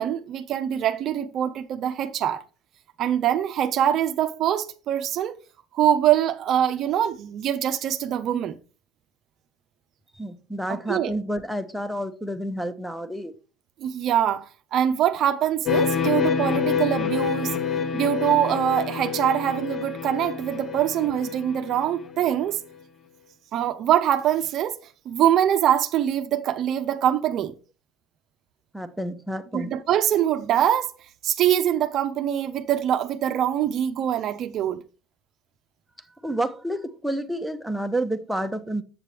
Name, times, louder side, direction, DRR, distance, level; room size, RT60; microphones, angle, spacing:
voice 1, 0.0-2.4 3.0-5.4 5.7-8.6 10.7-11.1 13.8-17.6 17.9-22.6 23.5-24.8 25.1-27.5 29.5-30.9 31.2-34.8, right 10 dB, 55° right, 0.5 m, -23 dB
voice 2, 10.1-13.3 28.7-29.7 36.2-38.8, right 1 dB, ahead, 0.8 m, -29 dB
sound 1, 15.7-22.3, left 6 dB, 45° left, 0.8 m, -27 dB
7.5 x 6.6 x 3.3 m
supercardioid pair, 100°, 0 cm